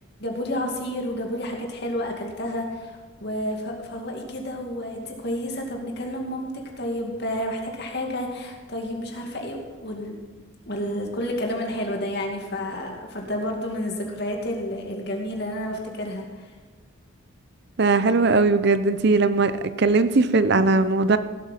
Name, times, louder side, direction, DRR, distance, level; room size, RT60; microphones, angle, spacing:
voice 1, 0.2-10.2 10.6-16.5, left 1 dB, 50° left, 1 dB, 2.3 m, -30 dB
voice 2, 17.8-19.5 19.8-21.2, right 3 dB, 55° right, 12 dB, 0.6 m, -19 dB
16.0 x 7.9 x 5.7 m, 1.3 s
head